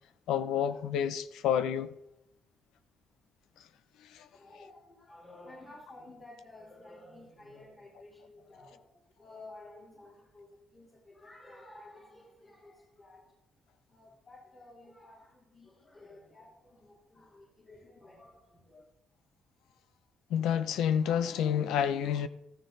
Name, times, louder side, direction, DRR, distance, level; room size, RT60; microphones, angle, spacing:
voice 1, 0.3-1.9 4.1-4.3 20.3-22.3, left 9 dB, 85° left, 0.8 m, -29 dB
voice 2, 4.3-13.4 13.9-18.8, left 2 dB, 40° left, 3.6 m, -53 dB
14.0 x 14.0 x 4.0 m
cardioid pair, 90°, 0 cm